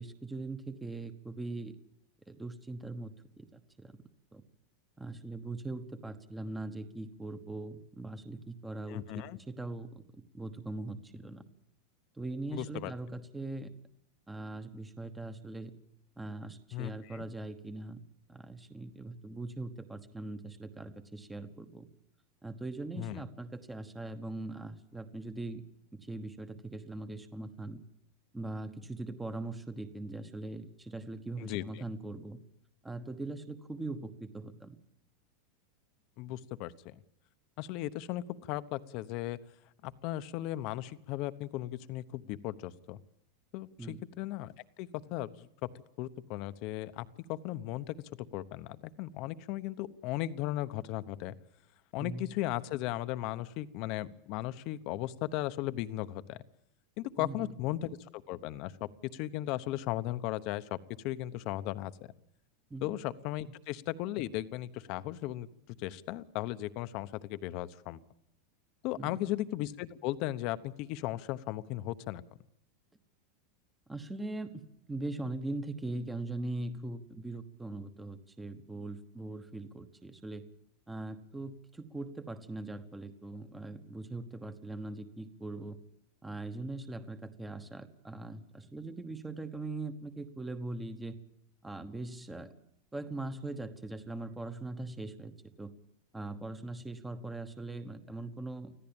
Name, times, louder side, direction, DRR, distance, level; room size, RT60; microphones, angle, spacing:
voice 1, 0.0-1.7 2.3-3.9 4.3-4.4 5.0-11.4 12.1-13.7 14.3-15.7 16.2-18.0 18.3-21.9 22.4-25.6 26.0-27.8 28.3-32.4 32.8-34.8 43.8-44.0 52.0-52.3 57.2-57.5 62.7-63.0 69.0-69.2 73.9-74.6 74.9-80.4 80.9-85.8 86.2-91.2 91.6-92.5 92.9-95.3 95.6-95.7 96.1-98.7, right 2 dB, 5° right, 10 dB, 1.1 m, -41 dB
voice 2, 8.9-9.4 12.5-12.9 16.7-17.3 23.0-23.2 31.4-31.6 36.2-36.7 37.6-39.4 39.8-43.0 43.5-44.5 44.8-45.5 46.0-48.0 48.3-51.3 51.9-56.4 57.0-57.9 58.3-60.6 61.0-61.9 62.8-65.5 65.8-68.0 68.8-72.2, left 15 dB, 40° left, 13 dB, 0.9 m, -36 dB
25.0 x 15.5 x 8.9 m, 0.76 s
supercardioid pair, 165°, 0 cm